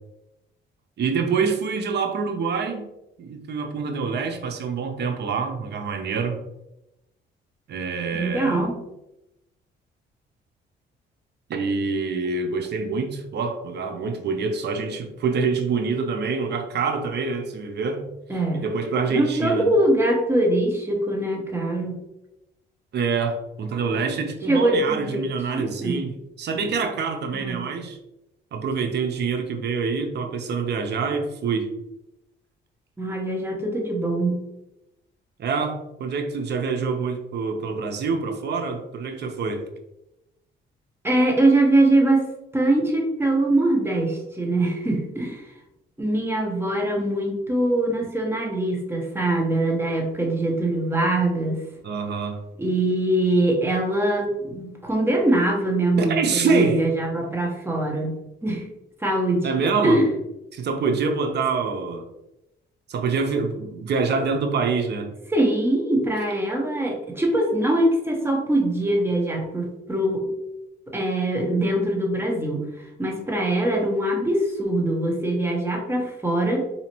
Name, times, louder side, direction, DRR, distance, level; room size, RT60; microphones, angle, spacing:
voice 1, 1.0-2.8 3.2-6.4 7.7-8.7 11.5-18.0 18.5-19.7 22.9-26.1 26.4-28.0 28.5-31.7 35.4-39.6 51.8-52.4 56.0-56.9 59.4-60.0 60.5-62.1 62.9-65.1, right 5 dB, 55° right, 5 dB, 0.7 m, -26 dB
voice 2, 8.1-8.7 18.3-18.6 19.1-22.0 24.5-26.0 27.3-27.6 33.0-34.4 41.0-42.2 42.5-45.4 46.0-51.6 52.6-58.1 58.4-58.7 59.0-59.5 59.8-60.0 65.3-70.3 70.9-72.7 73.0-76.6, right 1 dB, 10° right, 0 dB, 1.0 m, -22 dB
3.9 x 2.8 x 3.0 m, 0.90 s
cardioid pair, 90°, 20 cm